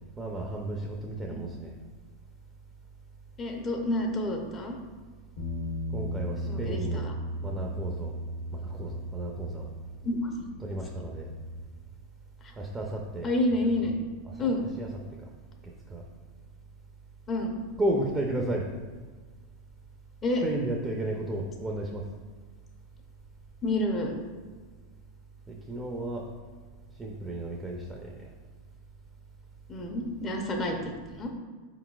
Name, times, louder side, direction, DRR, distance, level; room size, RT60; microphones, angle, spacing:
voice 1, 0.2-1.7 5.9-7.1 7.4-8.1 8.5-9.7 10.6-11.3 12.6-13.3 13.6-14.0 14.2-15.3 15.9-16.0 17.8-18.7 20.4-22.0 25.5-26.3 27.0-28.3, right 1 dB, 20° right, 1 dB, 0.5 m, -33 dB
voice 2, 3.4-4.8 6.5-7.1 10.0-10.5 13.2-13.9 14.4-14.6 17.3-17.6 20.2-20.4 23.6-24.1 29.7-31.3, left 1 dB, 30° left, 2 dB, 0.6 m, -29 dB
Bass guitar, 5.4-11.6, equal, 65° left, 0.9 m, -36 dB
4.2 x 3.9 x 2.3 m, 1.5 s
hypercardioid pair, 110°, 0 cm